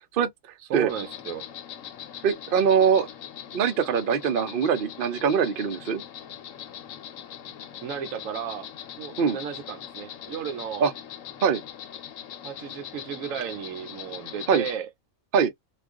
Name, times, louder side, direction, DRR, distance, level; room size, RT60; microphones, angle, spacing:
voice 1, 0.7-1.5 7.8-8.7 9.0-10.9 12.4-14.9, right 8 dB, 75° right, 1.0 m, -34 dB
Insect, 0.9-14.8, left 10 dB, 75° left, 1.1 m, -41 dB
voice 2, 2.2-3.1 3.5-6.0 9.2-9.4 10.8-10.9 11.4-11.6 14.5-14.6 15.3-15.5, right 7 dB, 50° right, 0.7 m, -22 dB
2.4 x 2.3 x 3.5 m
omnidirectional pair, 1.4 m